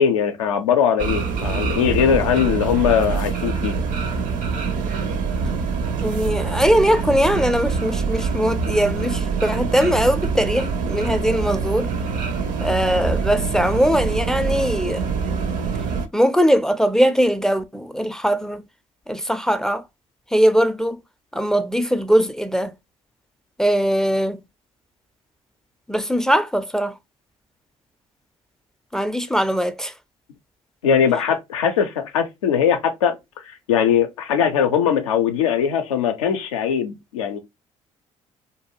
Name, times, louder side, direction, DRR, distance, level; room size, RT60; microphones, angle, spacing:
voice 1, 0.0-3.7 30.8-33.2 33.4-37.4, left 8 dB, 85° left, 0.4 m, -20 dB
sound 1, 1.0-16.1, right 5 dB, 55° right, 0.5 m, -25 dB
voice 2, 6.0-11.9 12.6-15.0 16.1-18.7 19.1-19.8 20.3-21.0 21.3-22.7 23.6-24.4 25.9-27.0 28.9-29.9, equal, 5° left, 0.3 m, -20 dB
2.6 x 2.2 x 2.9 m
hypercardioid pair, 55°, 16 cm